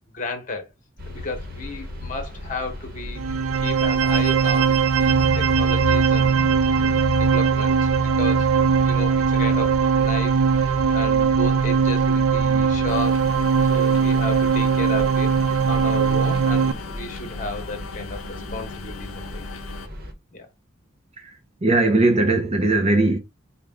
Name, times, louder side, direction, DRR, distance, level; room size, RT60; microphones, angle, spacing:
voice 1, 0.1-0.7 1.1-3.2 3.5-6.5 6.7-7.9 8.2-8.5 8.8-15.4 15.7-19.5 20.3-20.5, left 2 dB, 40° left, 1.0 m, -33 dB
sound 1, 1.0-20.1, left 2 dB, 45° right, 1.0 m, -33 dB
sound 2, 3.2-16.7, right 6 dB, 90° right, 0.4 m, -20 dB
sound 3, 12.9-19.9, left 6 dB, 80° left, 0.5 m, -39 dB
voice 2, 21.2-23.2, right 2 dB, 30° right, 0.5 m, -20 dB
4.8 x 2.2 x 3.5 m
head